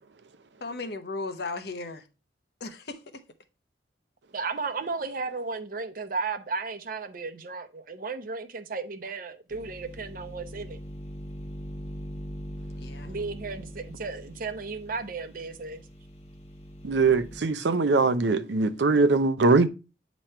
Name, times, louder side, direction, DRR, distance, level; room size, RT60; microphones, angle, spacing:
voice 1, 0.6-2.0 2.6-3.0 12.8-13.1, left 3 dB, 65° left, 0.8 m, -35 dB
voice 2, 4.3-10.8 13.0-15.8, right 4 dB, 50° right, 0.7 m, -34 dB
sound 1, 9.5-17.4, equal, 40° left, 1.1 m, -41 dB
voice 3, 16.8-19.7, right 3 dB, 85° right, 0.6 m, -22 dB
8.8 x 3.1 x 4.4 m
head